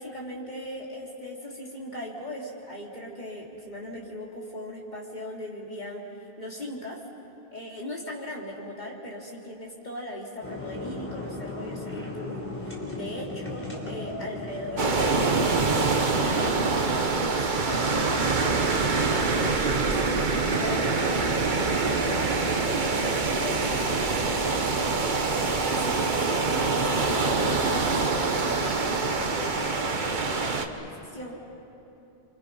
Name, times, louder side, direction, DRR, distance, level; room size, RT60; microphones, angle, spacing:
voice 1, 0.0-6.0 6.4-7.0 7.5-20.0 20.6-31.4, left 1 dB, 40° left, -3 dB, 3.4 m, -39 dB
sound 1, 10.4-16.5, left 2 dB, 10° left, 3.7 m, -36 dB
sound 2, 14.8-30.7, right 3 dB, 45° right, 1.2 m, -25 dB
29.5 x 25.0 x 5.5 m, 2.8 s
omnidirectional pair, 1.1 m